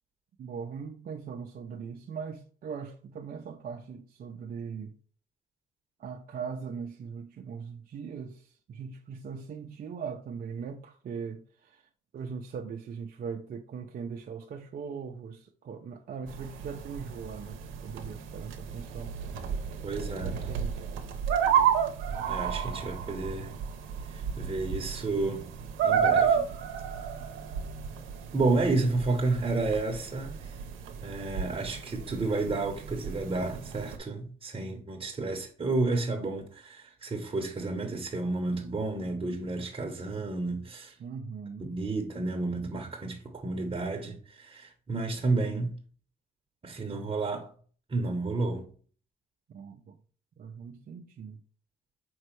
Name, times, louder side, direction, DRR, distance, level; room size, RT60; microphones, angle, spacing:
voice 1, 0.4-4.9 6.0-11.9 12.1-19.2 20.2-20.8 41.0-41.8 49.5-50.0 50.4-51.4, right 6 dB, 50° right, 0.5 m, -40 dB
sound 1, 16.3-34.0, right 7 dB, 90° right, 0.7 m, -32 dB
voice 2, 19.8-20.4 22.3-23.5 24.1-25.5 25.8-26.5 28.3-30.6 31.0-40.9 41.6-45.7 46.6-47.5 47.9-48.7, right 3 dB, 25° right, 0.9 m, -31 dB
5.2 x 3.2 x 3.1 m
cardioid pair, 90°, 20 cm